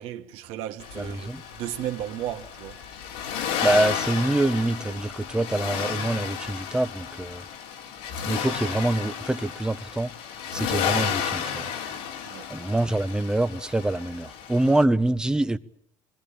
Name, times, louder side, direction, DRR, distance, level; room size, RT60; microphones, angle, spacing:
voice 1, 0.0-2.8 7.7-7.9 12.2-12.5, right 12 dB, 70° right, 2.2 m, -35 dB
Accelerating revving vroom, 0.8-14.8, left 8 dB, 85° left, 3.6 m, -32 dB
voice 2, 1.0-1.4 3.6-7.5 8.3-10.1 10.5-11.7 12.5-15.6, right 2 dB, 5° right, 1.1 m, -25 dB
25.0 x 21.0 x 8.7 m
cardioid pair, 130°, 11 cm